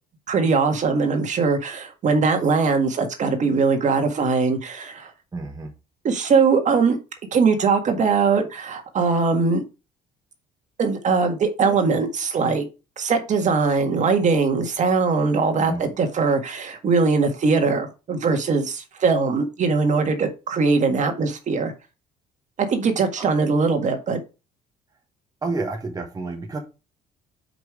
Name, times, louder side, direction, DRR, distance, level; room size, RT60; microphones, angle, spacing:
voice 1, 0.3-5.1 6.0-7.0 7.3-9.6 10.8-12.7 13.0-21.7 22.6-24.2, right 4 dB, 45° right, 6 dB, 1.7 m, -21 dB
voice 2, 5.3-5.7 15.6-15.9 23.2-23.3 25.4-26.6, right 3 dB, 20° right, 3 dB, 1.3 m, -30 dB
5.9 x 5.3 x 4.8 m, 0.29 s
cardioid pair, 110°, 17 cm